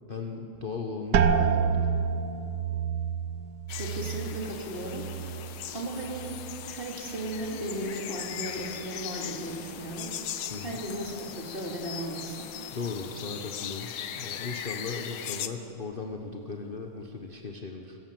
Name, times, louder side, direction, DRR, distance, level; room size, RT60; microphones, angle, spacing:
voice 1, 0.1-1.9 10.5-10.8 12.7-18.0, left 4 dB, 40° left, 4 dB, 0.8 m, -37 dB
sound 1, 1.1-6.8 7.1-7.8 8.3-8.7, right 6 dB, 60° right, 1.2 m, -29 dB
sound 2, 3.7-15.5, left 10 dB, 85° left, 1.8 m, -39 dB
voice 2, 3.8-5.1 5.7-6.3 6.7-10.1 10.6-12.5, right 1 dB, 25° right, -1 dB, 3.0 m, -35 dB
25.5 x 13.5 x 7.7 m, 2.9 s
omnidirectional pair, 2.2 m